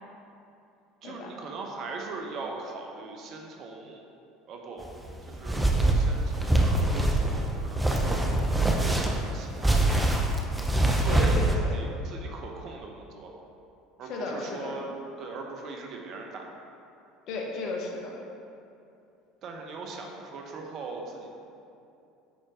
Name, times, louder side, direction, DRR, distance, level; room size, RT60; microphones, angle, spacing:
voice 1, 1.0-4.0 4.5-4.9 5.3-9.9 10.4-11.4 11.7-13.3 14.0-16.5 19.4-21.4, right 3 dB, 50° right, 1 dB, 0.9 m, -40 dB
sound 1, 4.8-11.6, right 1 dB, 10° right, 0.8 m, -24 dB
voice 2, 11.1-11.8 14.0-14.7 17.3-18.1, left 3 dB, 55° left, 0 dB, 1.0 m, -34 dB
9.5 x 4.4 x 3.0 m, 2.7 s
hypercardioid pair, 70°, 0 cm